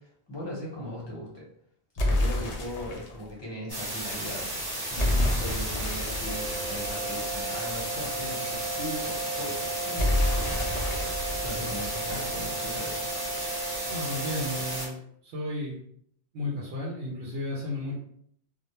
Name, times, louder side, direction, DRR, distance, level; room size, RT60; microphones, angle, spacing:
voice 1, 0.0-1.5 2.0-4.5 4.9-13.0, left 1 dB, 30° left, -5 dB, 0.7 m, -39 dB
sound 1, 2.0-3.2 5.0-7.7 10.0-12.7, left 1 dB, 55° left, 0.5 m, -29 dB
sound 2, 3.7-14.9, right 1 dB, 25° right, 0.6 m, -34 dB
sound 3, 6.1-15.0, right 3 dB, 75° left, 0.9 m, -36 dB
voice 2, 13.9-15.0 15.2-15.8 16.3-18.0, left 1 dB, 70° right, -4 dB, 0.8 m, -33 dB
2.2 x 2.0 x 2.9 m, 0.69 s
omnidirectional pair, 1.1 m